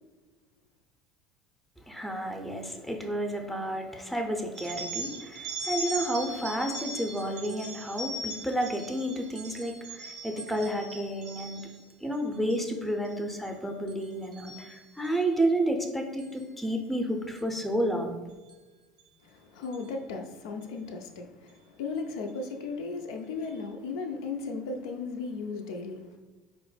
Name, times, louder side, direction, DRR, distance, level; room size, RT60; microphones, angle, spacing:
voice 1, 1.9-11.7 12.0-18.2, right 1 dB, 5° left, 3 dB, 0.5 m, -31 dB
sound 1, 4.6-11.9 12.3-12.7 13.0-13.5 13.9-15.2 16.2-16.4 17.4-17.5 18.5-18.6 19.0-19.1 19.6-19.9, right 2 dB, 75° right, 0.7 m, -40 dB
voice 2, 19.2-26.2, left 4 dB, 65° left, 4 dB, 0.3 m, -36 dB
4.4 x 2.0 x 3.2 m, 1.3 s
figure-of-eight pair, 65°, 3 cm